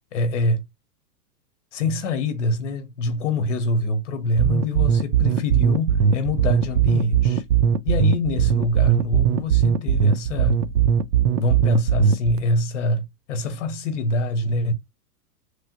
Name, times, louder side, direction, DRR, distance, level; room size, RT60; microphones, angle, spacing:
voice 1, 0.1-0.6 1.7-7.4 7.8-10.7 11.4-14.7, left 1 dB, 50° left, 0.8 m, -25 dB
sound 1, 4.4-12.4, right 8 dB, 85° right, 0.6 m, -19 dB
3.1 x 2.4 x 2.8 m
supercardioid pair, 180°, 47 cm